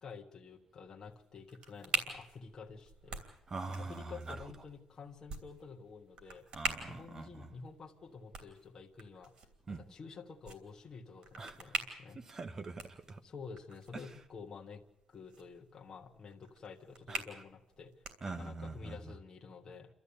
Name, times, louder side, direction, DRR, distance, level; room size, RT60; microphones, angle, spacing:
voice 1, 0.0-3.2 3.7-6.4 6.9-9.3 9.7-12.2 13.2-14.8 15.1-17.9 18.2-19.9, left 5 dB, 30° left, 1.3 m, -50 dB
sound 1, 1.0-18.7, right 3 dB, 50° right, 3.0 m, -45 dB
voice 2, 3.2-4.5 6.5-7.5 9.7-9.8 11.4-11.8 12.1-13.2 13.9-14.1 17.1-17.2 18.2-19.1, right 3 dB, 25° right, 1.0 m, -44 dB
29.5 x 13.0 x 8.6 m
cardioid pair, 175°, 2 cm